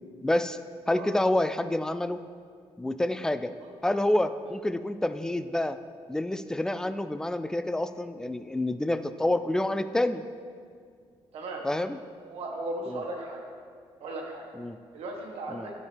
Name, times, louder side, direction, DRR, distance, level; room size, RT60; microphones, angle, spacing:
voice 1, 0.2-0.6 0.9-2.2 2.8-3.5 3.8-5.8 6.1-10.2 11.6-12.0 12.9-13.0 14.6-14.8 15.5-15.7, left 1 dB, 5° left, 12 dB, 0.3 m, -28 dB
voice 2, 11.3-11.6 12.2-13.4 14.0-14.5 14.9-15.7, right 2 dB, 75° right, -1 dB, 1.3 m, -36 dB
10.0 x 6.4 x 3.4 m, 2.1 s
cardioid pair, 85°, 10 cm